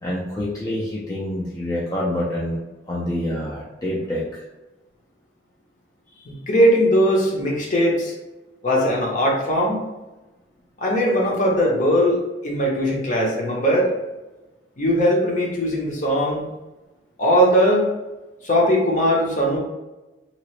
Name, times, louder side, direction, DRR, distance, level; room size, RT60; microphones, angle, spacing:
voice 1, 0.0-2.6 2.9-4.4, left 1 dB, 20° left, -6 dB, 0.4 m, -27 dB
voice 2, 6.3-8.1 8.6-9.9 10.8-13.9 14.8-16.4 17.2-17.8 18.4-19.6, equal, 45° left, -2 dB, 0.8 m, -19 dB
2.9 x 2.4 x 3.1 m, 1.1 s
head